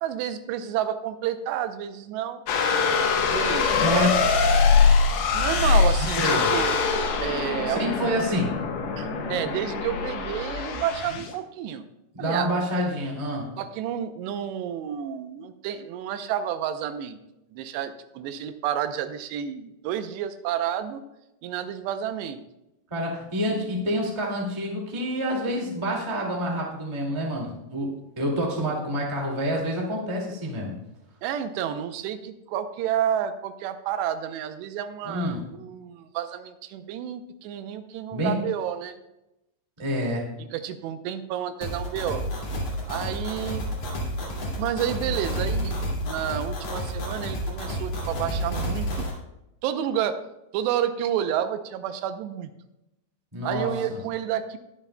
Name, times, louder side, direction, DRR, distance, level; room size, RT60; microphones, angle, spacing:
voice 1, 0.0-2.4 3.3-4.1 5.3-6.8 7.2-8.0 9.0-11.9 12.2-12.5 13.6-17.2 17.5-21.0 21.4-22.4 31.2-39.0 40.5-42.2 42.9-43.7 44.6-45.7 46.0-49.1 49.6-50.2 50.5-52.5 53.4-54.6, right 10 dB, 85° right, 9 dB, 2.8 m, -30 dB
sound 1, 2.5-11.3, left 5 dB, 85° left, 3.3 m, -23 dB
voice 2, 3.7-4.2 6.1-6.5 7.7-8.6 12.1-13.5 22.9-30.8 35.0-35.4 38.1-38.3 39.8-40.3 53.3-54.0, equal, 25° right, -2 dB, 0.6 m, -27 dB
sound 2, 41.6-49.1, equal, 50° left, 3.3 m, -30 dB
21.0 x 7.4 x 2.2 m, 0.91 s
omnidirectional pair, 4.8 m